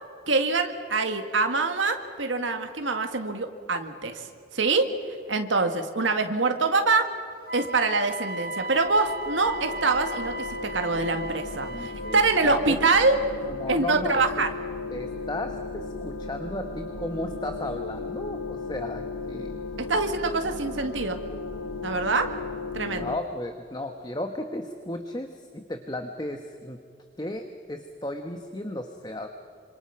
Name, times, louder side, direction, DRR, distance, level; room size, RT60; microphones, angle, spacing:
voice 1, 0.3-4.3 4.5-4.9 5.3-7.1 7.5-10.4 10.6-13.2 13.7-14.5 19.8-21.2 21.8-22.3 22.7-23.1, right 3 dB, 90° right, 6 dB, 2.0 m, -24 dB
Wind instrument woodwind instrument, 7.4-12.3, right 1 dB, 50° right, 1.6 m, -36 dB
sound 1, 8.3-23.2, left 3 dB, 90° left, 1.2 m, -36 dB
voice 2, 11.7-12.8 13.4-14.5 14.9-19.6 19.9-20.0 22.9-26.8 27.2-29.3, left 1 dB, 20° left, 6 dB, 1.1 m, -35 dB
26.5 x 26.5 x 5.8 m, 2.4 s
head